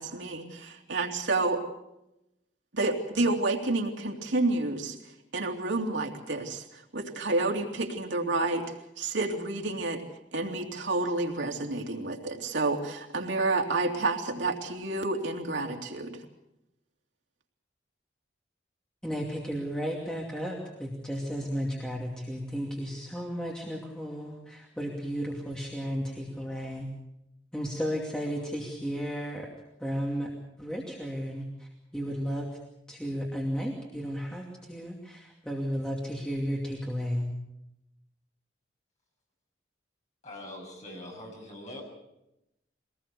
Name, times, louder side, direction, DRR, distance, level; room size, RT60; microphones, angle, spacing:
voice 1, 0.0-1.7 2.7-5.0 5.3-10.0 10.3-16.2, right 2 dB, 85° right, 2 dB, 2.9 m, -29 dB
voice 2, 19.0-26.9 27.5-29.5 29.8-30.3 30.6-32.5 32.9-37.3, equal, 5° left, -2 dB, 2.6 m, -34 dB
voice 3, 40.2-41.8, left 1 dB, 40° left, -1 dB, 7.3 m, -43 dB
24.0 x 19.0 x 6.9 m, 0.87 s
head